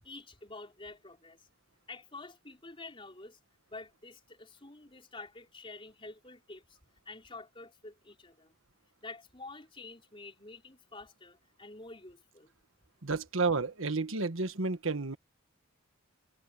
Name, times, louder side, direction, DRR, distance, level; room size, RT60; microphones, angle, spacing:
voice 1, 0.0-1.5 1.9-3.4 3.6-6.8 7.0-8.5 9.0-12.5, left 3 dB, 25° left, 4.4 m, -48 dB
voice 2, 13.0-15.2, right 3 dB, 75° right, 1.4 m, -31 dB
head